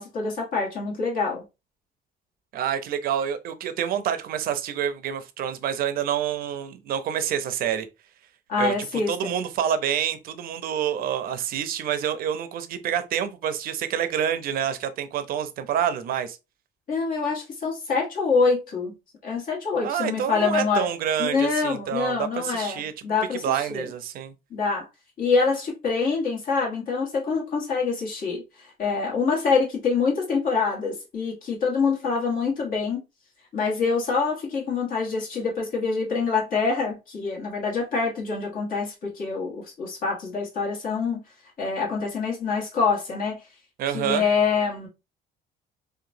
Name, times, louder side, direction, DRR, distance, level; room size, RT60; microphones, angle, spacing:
voice 1, 0.0-1.4 8.5-9.3 16.9-18.9 19.2-20.9 21.2-23.9 24.5-24.9 25.2-33.0 33.5-41.2 41.6-43.4 43.9-44.9, left 4 dB, 55° left, 1.4 m, -25 dB
voice 2, 2.5-7.9 8.6-8.7 9.1-16.4 19.8-22.9 23.4-24.3 43.8-44.2, right 9 dB, 60° right, 0.5 m, -27 dB
2.8 x 2.2 x 2.6 m
cardioid pair, 110°, 17 cm